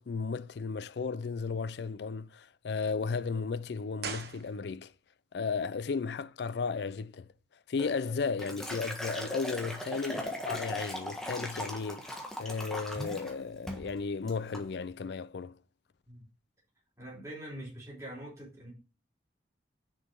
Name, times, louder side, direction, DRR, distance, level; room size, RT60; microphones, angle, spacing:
voice 1, 0.0-4.9 5.3-7.3 7.7-15.6, left 5 dB, 65° left, 0.4 m, -34 dB
sound 1, 4.0-5.1 5.3-5.4, right 5 dB, 60° right, 1.1 m, -41 dB
Liquid, 7.8-13.3 13.7-13.9 14.3-14.6, equal, 5° left, 1.4 m, -39 dB
voice 2, 17.0-18.7, right 1 dB, 15° right, 3.6 m, -44 dB
6.7 x 5.5 x 4.6 m
head